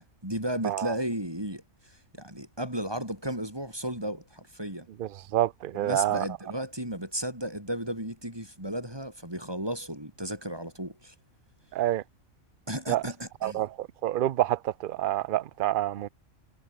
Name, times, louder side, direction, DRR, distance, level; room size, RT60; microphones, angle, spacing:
voice 1, 0.0-4.9 5.7-11.1 12.7-13.6, right 1 dB, 15° right, 5.9 m, -34 dB
voice 2, 5.0-6.2 11.7-12.0 12.9-13.0 13.4-16.1, right 13 dB, 60° right, 0.6 m, -28 dB
omnidirectional pair, 1.4 m